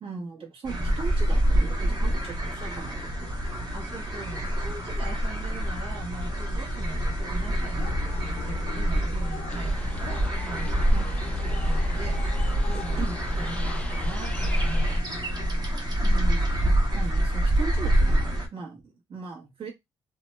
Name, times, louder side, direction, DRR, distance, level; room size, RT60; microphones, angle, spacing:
voice 1, 0.0-3.4 10.9-11.2 12.7-13.2 16.0-16.6 16.9-19.7, right 4 dB, 60° right, 1.2 m, -38 dB
sound 1, 0.6-18.5, right 1 dB, 40° right, 1.1 m, -26 dB
sound 2, 1.9-15.6, left 6 dB, 75° left, 0.7 m, -42 dB
voice 2, 3.7-10.7 11.4-12.2 12.7-15.0 15.3-16.0, right 2 dB, 80° right, 1.1 m, -41 dB
sound 3, 9.5-15.0, left 2 dB, 10° left, 0.4 m, -39 dB
2.8 x 2.3 x 3.1 m
cardioid pair, 90°, 11 cm